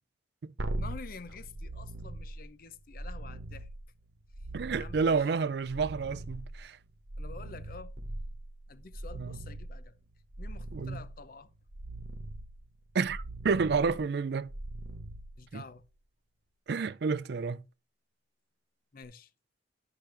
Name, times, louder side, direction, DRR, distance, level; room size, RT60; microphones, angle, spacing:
sound 1, 0.6-15.9 19.0-19.1, right 1 dB, 80° right, 1.1 m, -41 dB
voice 1, 0.8-3.7 4.8-5.2 7.2-7.9 8.7-9.9 10.4-11.5 15.4-15.8 18.9-19.3, left 4 dB, 50° left, 0.6 m, -48 dB
voice 2, 4.5-6.8 9.2-9.4 10.7-11.0 12.9-14.5 15.5-15.6 16.7-17.6, right 5 dB, 60° right, 0.4 m, -30 dB
12.0 x 5.9 x 3.3 m
head